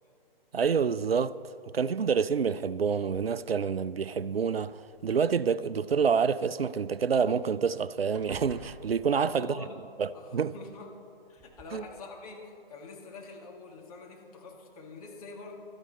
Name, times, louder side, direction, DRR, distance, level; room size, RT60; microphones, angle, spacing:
voice 1, 0.5-1.3 1.7-9.6 10.0-10.5 11.7-11.8, right 6 dB, 85° right, 0.5 m, -27 dB
sound 1, 4.6-5.4 7.2-7.3 7.6-7.8 8.1-9.6 10.7-10.8 11.4-11.7, right 3 dB, 15° right, 1.0 m, -51 dB
voice 2, 9.0-9.8 10.1-10.9 11.3-15.6, left 3 dB, 40° left, 2.2 m, -45 dB
16.0 x 13.0 x 4.2 m
figure-of-eight pair, 135°, 29 cm